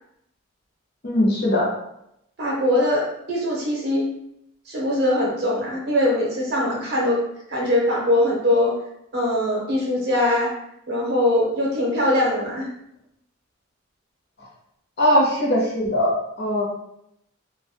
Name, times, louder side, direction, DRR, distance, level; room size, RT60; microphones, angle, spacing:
voice 1, 1.0-1.7 15.0-16.6, left 1 dB, 50° left, -4 dB, 0.7 m, -20 dB
voice 2, 2.4-4.1 4.7-7.2 7.5-8.8 9.1-10.5 10.9-12.7, left 1 dB, 50° right, -4 dB, 0.7 m, -22 dB
2.4 x 2.1 x 2.6 m, 0.78 s
head